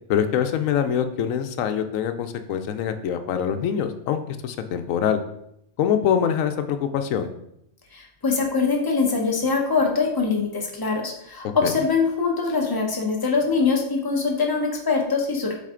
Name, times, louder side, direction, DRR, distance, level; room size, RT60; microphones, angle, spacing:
voice 1, 0.1-5.2 5.8-7.3 11.6-11.7, left 8 dB, 90° left, 9 dB, 1.0 m, -24 dB
voice 2, 7.9-15.6, left 4 dB, 20° left, 0 dB, 1.0 m, -23 dB
7.4 x 4.1 x 3.7 m, 0.78 s
omnidirectional pair, 1.3 m